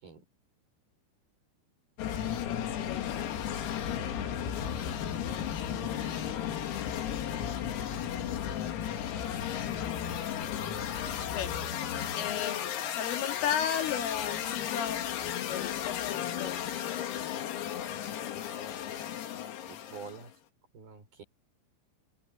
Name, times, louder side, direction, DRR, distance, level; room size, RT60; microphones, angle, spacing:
sound 1, 2.0-20.3, left 9 dB, 90° left, 5.4 m, -34 dB
voice 1, 2.4-3.7 11.3-11.5 12.2-16.6, left 9 dB, 70° left, 5.1 m, -35 dB
voice 2, 5.7-6.7 19.7-20.3 20.7-21.2, right 5 dB, 45° right, 7.1 m, -47 dB
omnidirectional pair, 6.0 m